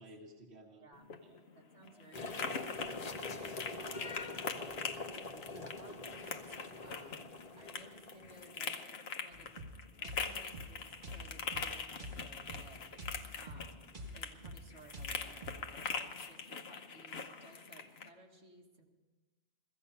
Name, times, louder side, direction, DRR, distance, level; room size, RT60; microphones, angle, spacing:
voice 1, 0.0-1.4 1.8-2.1 3.6-4.1 5.3-5.9, right 1 dB, 65° right, 0 dB, 1.7 m, -56 dB
sound 1, 0.9-18.1, left 5 dB, 60° left, 1.1 m, -43 dB
voice 2, 1.6-2.6 3.3-5.0 5.6-9.5 10.0-12.9 13.4-18.8, right 2 dB, 85° right, -1 dB, 2.2 m, -59 dB
sound 2, 2.1-8.7, left 3 dB, 35° left, 1.0 m, -45 dB
sound 3, 9.3-15.6, equal, 45° right, 1.3 m, -48 dB
16.0 x 15.0 x 5.4 m, 1.2 s
omnidirectional pair, 1.2 m